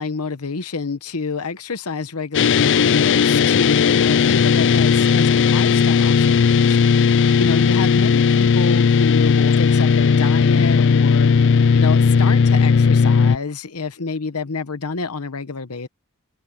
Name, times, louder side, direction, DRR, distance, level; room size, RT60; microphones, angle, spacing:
voice 1, 0.0-11.3 11.7-15.9, left 4 dB, 75° left, 1.0 m, -28 dB
sound 1, 2.3-13.4, left 6 dB, 55° left, 0.4 m, -16 dB
head